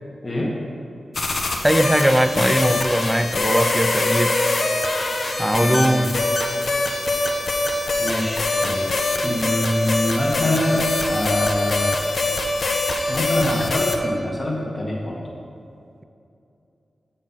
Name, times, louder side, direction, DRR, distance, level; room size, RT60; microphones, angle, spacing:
sound 1, 1.1-14.0, left 2 dB, 60° left, 0.8 m, -23 dB
voice 1, 1.6-4.4 5.4-6.2, right 1 dB, 10° right, 10 dB, 0.4 m, -20 dB
voice 2, 5.6-6.1 8.0-8.9 9.2-12.0 13.1-15.2, left 1 dB, 35° left, -3 dB, 1.3 m, -24 dB
7.1 x 5.9 x 5.6 m, 2.7 s
wide cardioid pair, 75°, 0 cm